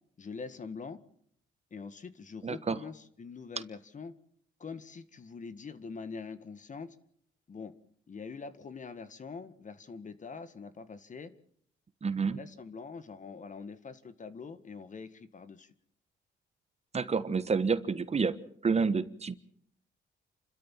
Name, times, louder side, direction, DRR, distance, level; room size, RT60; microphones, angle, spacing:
voice 1, 0.2-1.0 1.7-4.1 4.6-7.0 7.5-7.7 8.1-11.3 12.3-15.7, left 5 dB, 40° left, 12 dB, 1.8 m, -44 dB
voice 2, 2.4-2.8 12.0-12.4 16.9-19.3, right 5 dB, 35° right, 13 dB, 1.3 m, -29 dB
29.0 x 13.0 x 7.5 m, 0.66 s
cardioid pair, 90°, 20 cm